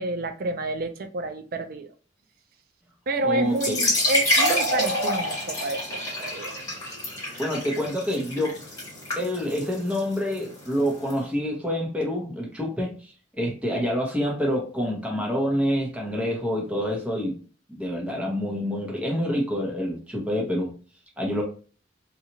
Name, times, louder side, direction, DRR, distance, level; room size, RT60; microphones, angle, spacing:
voice 1, 0.0-1.9 3.1-6.5, right 2 dB, 50° right, 0.4 m, -29 dB
voice 2, 3.2-3.8 7.4-8.6 9.2-17.4 17.7-20.7 21.2-21.4, equal, 5° right, 0.8 m, -27 dB
sound 1, 3.5-11.1, left 1 dB, 20° left, 1.4 m, -27 dB
2.9 x 2.4 x 2.7 m
head